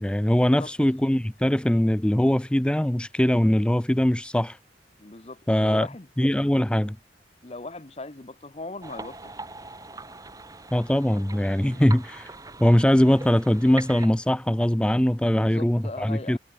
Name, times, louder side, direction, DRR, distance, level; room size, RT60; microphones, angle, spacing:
voice 1, 0.0-4.6 5.5-5.9 6.2-7.0 10.7-12.3 12.6-16.4, equal, 5° left, 0.4 m, -21 dB
voice 2, 5.0-6.1 7.4-9.3 11.7-11.8 15.2-16.4, left 2 dB, 35° left, 1.0 m, -39 dB
sound 1, 8.8-14.1, right 3 dB, 20° right, 2.2 m, -41 dB
head